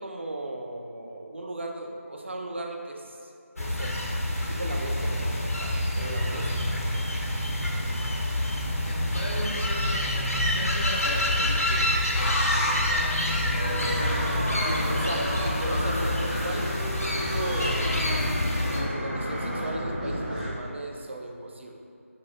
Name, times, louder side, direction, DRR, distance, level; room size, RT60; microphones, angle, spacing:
voice 1, 0.0-4.0 4.4-7.1 14.9-17.9 18.8-21.8, right 2 dB, 55° right, 2 dB, 0.5 m, -37 dB
sound 1, 3.6-18.8, left 1 dB, 90° left, 0.8 m, -27 dB
voice 2, 8.7-15.4, left 1 dB, 50° left, 0 dB, 0.6 m, -36 dB
sound 2, 12.6-15.6 16.6-19.7, equal, 25° right, 1.1 m, -35 dB
sound 3, 13.6-20.5, equal, ahead, 0.6 m, -32 dB
5.6 x 3.5 x 2.5 m, 2.5 s
figure-of-eight pair, 165°, 8 cm